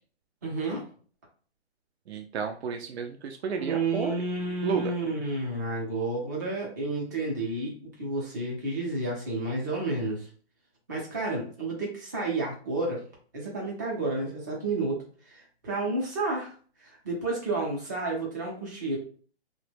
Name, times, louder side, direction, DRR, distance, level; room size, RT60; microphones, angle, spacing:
voice 1, 0.4-0.8 3.6-10.2 10.9-13.0 13.3-16.5 16.8-19.0, right 2 dB, 20° right, -2 dB, 0.5 m, -31 dB
voice 2, 2.1-4.2 4.6-4.9, right 6 dB, 80° right, 4 dB, 0.5 m, -31 dB
3.0 x 2.2 x 3.2 m, 0.42 s
hypercardioid pair, 165°, 32 cm